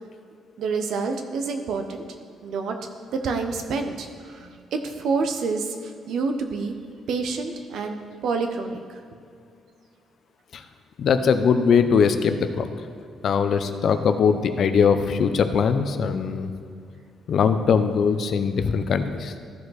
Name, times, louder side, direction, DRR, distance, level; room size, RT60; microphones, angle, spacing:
voice 1, 0.6-2.0 2.4-2.8 3.1-6.7 7.1-8.0 8.2-8.8, right 4 dB, 75° right, 5 dB, 0.9 m, -28 dB
voice 2, 11.0-12.7 13.2-16.5 17.3-19.3, left 6 dB, 60° left, 9 dB, 0.6 m, -21 dB
13.5 x 5.2 x 4.1 m, 2.4 s
cardioid pair, 90°, 0 cm